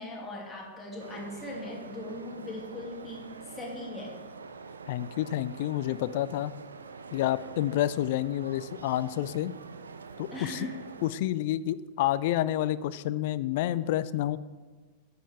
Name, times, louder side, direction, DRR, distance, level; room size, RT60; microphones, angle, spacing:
voice 1, 0.0-4.1 10.3-10.7, left 1 dB, 15° left, -3 dB, 2.4 m, -39 dB
sound 1, 1.0-11.1, right 5 dB, 75° right, 0.4 m, -45 dB
voice 2, 4.9-6.5 7.1-9.5 10.2-10.7 11.0-14.4, left 13 dB, 50° left, 17 dB, 0.3 m, -29 dB
9.1 x 6.6 x 4.7 m, 1.4 s
figure-of-eight pair, 90°, 0 cm